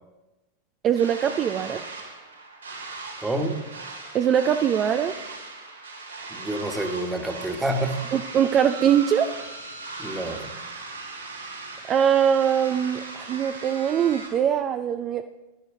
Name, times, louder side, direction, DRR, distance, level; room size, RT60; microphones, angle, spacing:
voice 1, 0.8-1.8 4.1-5.2 8.1-9.3 11.9-15.3, right 8 dB, 30° right, 8 dB, 0.6 m, -22 dB
sound 1, 0.9-14.3, right 3 dB, 80° right, 4.3 m, -38 dB
voice 2, 3.2-3.6 6.3-8.1 10.0-10.5, right 1 dB, 10° right, 5 dB, 1.6 m, -28 dB
19.5 x 12.0 x 3.7 m, 1.1 s
figure-of-eight pair, 90°, 0 cm